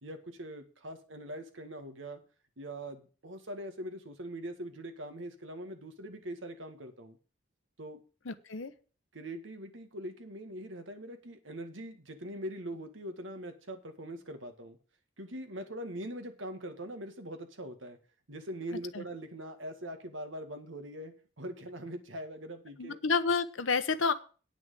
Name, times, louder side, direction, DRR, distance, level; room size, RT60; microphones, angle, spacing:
voice 1, 0.0-2.2 2.6-7.2 7.8-8.0 9.1-14.8 15.2-18.0 18.3-23.0, right 1 dB, 85° right, 7 dB, 2.0 m, -42 dB
voice 2, 8.3-8.7 18.9-19.0 22.8-24.1, left 4 dB, 90° left, 10 dB, 0.9 m, -29 dB
9.3 x 6.2 x 7.6 m, 0.37 s
head